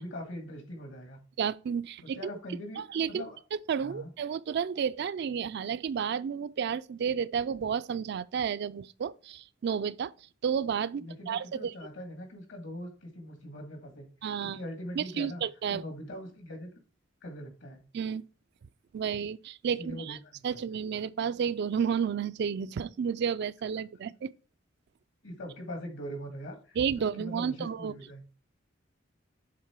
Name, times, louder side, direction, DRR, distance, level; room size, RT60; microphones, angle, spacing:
voice 1, 0.0-1.2 2.0-3.4 3.8-4.1 11.0-14.1 14.4-15.4 15.7-16.7 17.2-17.8 19.8-20.6 25.2-28.2, equal, 75° left, 1.9 m, -42 dB
voice 2, 1.4-2.2 2.8-3.2 3.7-10.1 10.4-11.7 14.2-14.6 15.0-15.8 17.9-18.2 18.9-20.2 20.4-24.3 26.8-27.9, right 7 dB, 60° right, 0.3 m, -31 dB
7.5 x 3.7 x 4.5 m
head